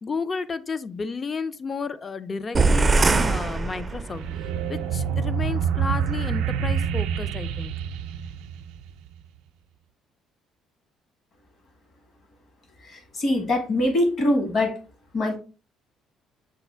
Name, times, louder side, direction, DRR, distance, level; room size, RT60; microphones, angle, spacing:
voice 1, 0.0-4.2 4.7-7.7, left 4 dB, 35° left, 0.4 m, -32 dB
sound 1, 2.5-4.4, right 3 dB, 30° right, 0.4 m, -21 dB
sound 2, 4.1-9.1, right 7 dB, 90° right, 0.4 m, -27 dB
voice 2, 12.8-14.8 15.1-15.4, left 1 dB, 55° left, 1.6 m, -23 dB
6.5 x 2.4 x 3.3 m
supercardioid pair, 85°, 0 cm